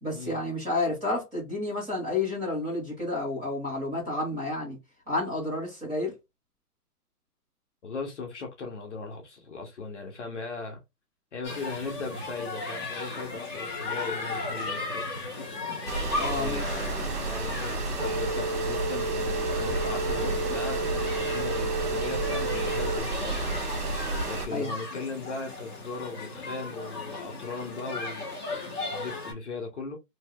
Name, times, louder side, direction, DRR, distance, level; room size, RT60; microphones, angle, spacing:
voice 1, 0.0-4.8 5.1-6.1 16.2-16.8 24.5-24.7, left 2 dB, 10° right, 1.4 m, -30 dB
voice 2, 7.8-10.8 11.3-15.3 16.3-23.5 24.2-30.0, left 4 dB, 50° left, 0.8 m, -38 dB
sound 1, 11.4-29.3, left 3 dB, 15° left, 0.9 m, -37 dB
sound 2, 15.9-24.5, right 3 dB, 80° right, 1.5 m, -31 dB
sound 3, 18.0-23.0, right 2 dB, 40° right, 1.0 m, -32 dB
3.1 x 2.7 x 2.3 m
hypercardioid pair, 170°, 47 cm